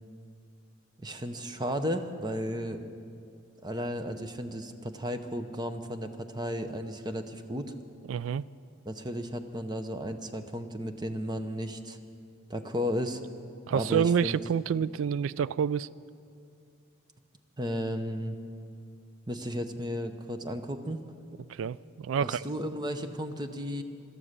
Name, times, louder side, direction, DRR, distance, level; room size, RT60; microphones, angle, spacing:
voice 1, 1.0-2.9 3.6-7.7 8.8-12.0 12.5-13.2 13.7-14.4 17.6-18.4 19.3-21.1 22.2-23.8, equal, 20° right, 8 dB, 0.8 m, -34 dB
voice 2, 8.1-8.4 13.7-15.9 21.5-22.5, right 7 dB, 70° right, 20 dB, 0.3 m, -28 dB
17.0 x 12.5 x 6.6 m, 2.4 s
head